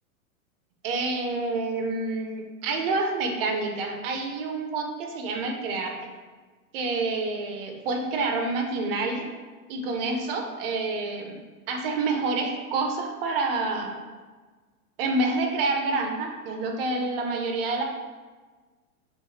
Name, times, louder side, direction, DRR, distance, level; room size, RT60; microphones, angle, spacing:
voice 1, 0.8-6.0 6.7-9.3 9.7-11.4 11.7-13.9 15.0-17.8, right 3 dB, 40° right, 3 dB, 0.4 m, -28 dB
2.5 x 2.4 x 2.8 m, 1.4 s
hypercardioid pair, 115°, 45 cm